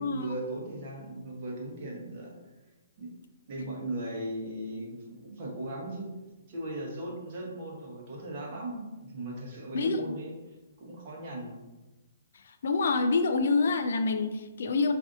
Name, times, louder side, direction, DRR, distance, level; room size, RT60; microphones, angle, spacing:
voice 1, 0.0-2.3 3.0-3.1 3.5-6.1 6.5-10.3 10.8-11.5, right 1 dB, 40° right, -2 dB, 1.0 m, -38 dB
voice 2, 9.7-10.1 12.6-14.9, left 3 dB, 65° left, 8 dB, 0.3 m, -26 dB
4.9 x 2.5 x 2.5 m, 1.1 s
hypercardioid pair, 165°, 0 cm